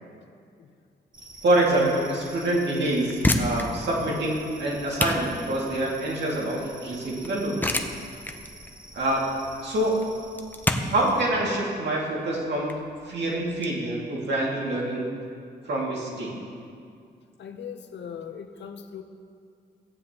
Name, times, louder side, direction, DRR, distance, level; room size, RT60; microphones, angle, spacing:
sound 1, 1.1-11.2, right 2 dB, 25° right, 1.3 m, -47 dB
voice 1, 1.4-7.8 8.9-9.2 9.6-10.0 10.9-12.7 13.0-15.1 15.6-16.3, right 1 dB, 70° right, -4 dB, 2.2 m, -26 dB
sound 2, 3.1-13.7, left 1 dB, 10° left, 0.6 m, -30 dB
voice 2, 17.4-19.0, left 7 dB, 75° left, 6 dB, 0.7 m, -39 dB
14.5 x 9.5 x 2.9 m, 2.3 s
cardioid pair, 105°, 18 cm